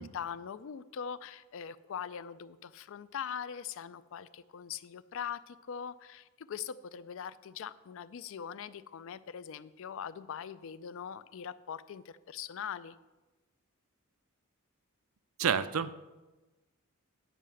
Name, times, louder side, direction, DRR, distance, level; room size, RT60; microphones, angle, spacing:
voice 1, 0.0-13.0, left 8 dB, 65° left, 16 dB, 0.4 m, -42 dB
voice 2, 15.4-15.9, right 7 dB, 85° right, 14 dB, 0.5 m, -29 dB
9.1 x 5.6 x 6.2 m, 1.1 s
head